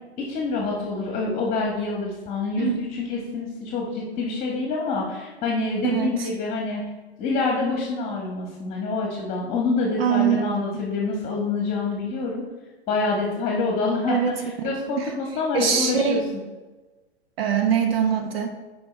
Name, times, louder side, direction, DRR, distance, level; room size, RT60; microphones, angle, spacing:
voice 1, 0.2-6.8 7.2-12.4 12.9-16.2, left 3 dB, 20° left, -1 dB, 1.3 m, -26 dB
voice 2, 5.8-6.3 10.0-10.4 14.1-14.3 15.0-15.1 15.5-16.2 17.4-18.5, right 7 dB, 60° right, 5 dB, 1.0 m, -22 dB
9.4 x 4.8 x 3.4 m, 1.2 s
figure-of-eight pair, 105°, 33 cm